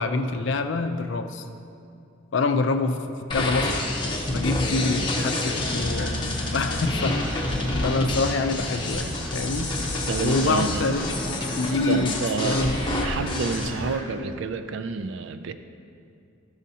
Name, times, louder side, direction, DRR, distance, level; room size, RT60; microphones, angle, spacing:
voice 1, 0.0-1.4 2.3-3.7 4.0-6.2 6.5-7.4 7.8-9.7 10.2-11.1 11.4-12.1 12.4-12.7, left 3 dB, 55° left, 8 dB, 0.4 m, -26 dB
sound 1, 3.3-13.7, left 1 dB, 20° left, 0.7 m, -28 dB
sound 2, 4.9-14.0, equal, 10° right, 1.5 m, -41 dB
voice 2, 10.1-10.9 11.8-12.6 13.0-15.5, right 5 dB, 60° right, 9 dB, 0.3 m, -29 dB
11.5 x 6.3 x 2.8 m, 2.5 s
head